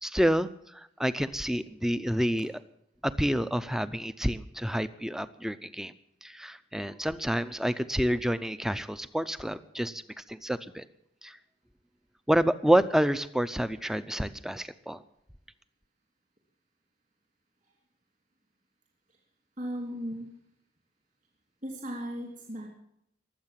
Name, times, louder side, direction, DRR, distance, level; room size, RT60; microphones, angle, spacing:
voice 1, 0.0-2.5 3.0-5.9 6.2-10.0 10.3-10.8 11.2-11.4 12.3-15.0, equal, 5° right, 13 dB, 0.6 m, -28 dB
voice 2, 19.6-20.3 21.6-22.7, equal, 45° right, 0 dB, 3.1 m, -36 dB
21.5 x 8.1 x 7.5 m, 0.77 s
head